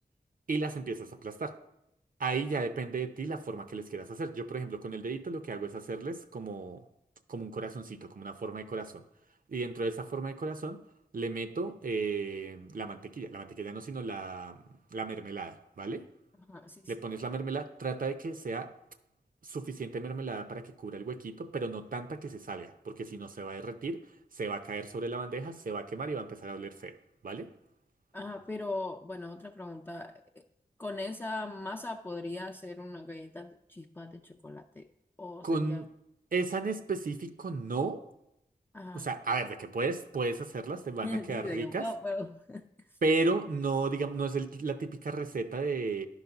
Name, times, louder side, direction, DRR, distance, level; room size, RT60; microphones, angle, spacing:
voice 1, 0.5-1.5 2.2-6.9 7.3-9.0 9.5-10.8 11.1-14.6 14.9-16.1 16.9-18.7 19.4-24.0 24.3-27.0 27.2-27.5 35.4-35.9 36.3-38.0 38.9-41.9 43.0-46.1, right 3 dB, 60° right, 9 dB, 0.6 m, -34 dB
voice 2, 16.5-16.9 28.1-30.4 30.8-34.9 35.2-35.8 38.7-39.1 41.0-43.0, left 2 dB, 15° left, 2 dB, 0.4 m, -39 dB
11.0 x 4.0 x 5.8 m, 0.83 s
wide cardioid pair, 85°, 16 cm